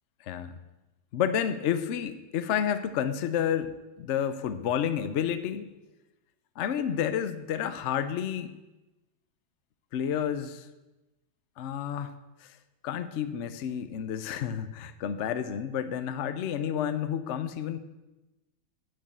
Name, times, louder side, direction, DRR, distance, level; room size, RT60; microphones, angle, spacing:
voice 1, 1.1-5.7 6.6-8.5 9.9-10.7 11.6-12.1 12.4-12.5 12.8-17.8, left 9 dB, 60° left, 11 dB, 0.8 m, -30 dB
9.1 x 6.3 x 8.5 m, 1.0 s
omnidirectional pair, 1.9 m